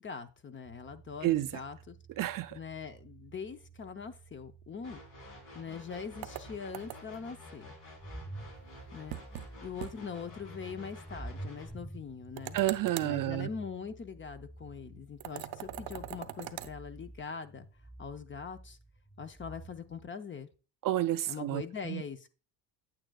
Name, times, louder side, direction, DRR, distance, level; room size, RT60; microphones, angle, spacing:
voice 1, 0.0-2.0 2.5-5.0 5.5-7.8 8.9-9.2 9.6-12.6 13.0-17.7 18.0-18.8 19.2-20.5 21.3-22.3, left 6 dB, 25° left, 0.7 m, -42 dB
sound 1, 0.6-20.1, right 2 dB, 5° left, 1.4 m, -50 dB
voice 2, 2.2-2.6 12.5-13.5 20.8-22.0, right 14 dB, 50° right, 0.5 m, -30 dB
sound 2, 4.8-11.7, left 1 dB, 75° left, 4.0 m, -51 dB
sound 3, 6.2-7.3 9.1-9.5 9.8-9.9 10.3-10.4 12.4-13.2 15.2-16.7, right 13 dB, 85° right, 0.8 m, -42 dB
8.9 x 8.8 x 2.3 m
cardioid pair, 110°, 44 cm